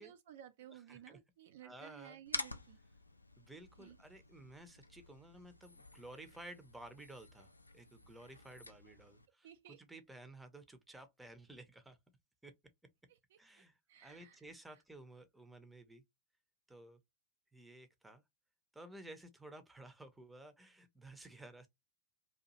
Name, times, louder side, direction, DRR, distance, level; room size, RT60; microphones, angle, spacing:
voice 1, 0.0-2.8 3.8-4.0 9.4-9.8 13.1-14.5 14.7-14.8, right 10 dB, 55° right, 0.3 m, -56 dB
voice 2, 0.7-1.2 1.6-2.2 3.4-7.5 7.7-12.0 12.4-12.5 13.4-16.0 16.7-17.0 17.5-18.2 18.7-21.7, right 2 dB, 5° right, 0.6 m, -54 dB
sound 1, 2.3-9.3, left 2 dB, 85° left, 0.3 m, -49 dB
2.8 x 2.3 x 2.9 m
figure-of-eight pair, 90°, 0 cm